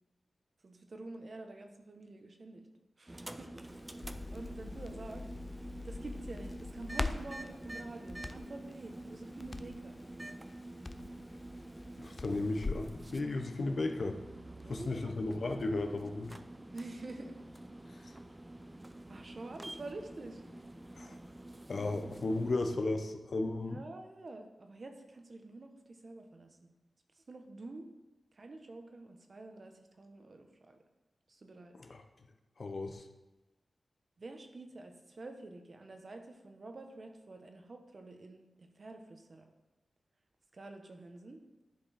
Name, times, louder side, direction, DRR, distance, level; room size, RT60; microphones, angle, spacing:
voice 1, 0.6-2.7 3.0-3.5 4.3-5.3 5.8-10.0 12.2-12.4 14.5-15.1 16.7-17.3 19.1-20.4 23.6-26.7 27.2-27.9 28.3-30.8 31.3-31.7 34.2-39.5 40.5-41.4, right 2 dB, 50° right, 5 dB, 1.1 m, -48 dB
sound 1, 3.1-22.9, right 1 dB, 20° right, 0.5 m, -48 dB
Crackle, 3.7-12.9, left 3 dB, 40° left, 0.5 m, -43 dB
voice 2, 12.0-14.2 14.7-16.4 18.0-18.1 20.9-21.2 21.7-23.8 31.7-32.0 32.6-33.0, left 2 dB, 60° left, 6 dB, 0.9 m, -35 dB
10.5 x 5.3 x 4.3 m, 1.1 s
cardioid pair, 70°, 0 cm